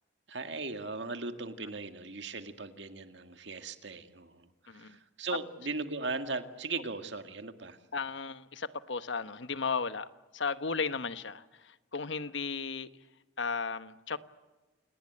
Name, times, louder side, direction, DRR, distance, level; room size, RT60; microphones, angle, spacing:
voice 1, 0.3-4.5 4.7-7.8, right 3 dB, 65° right, 7 dB, 2.0 m, -38 dB
voice 2, 7.9-10.1 10.3-12.9 13.4-14.2, left 5 dB, 70° left, 12 dB, 1.1 m, -35 dB
28.5 x 19.5 x 8.7 m, 1.2 s
head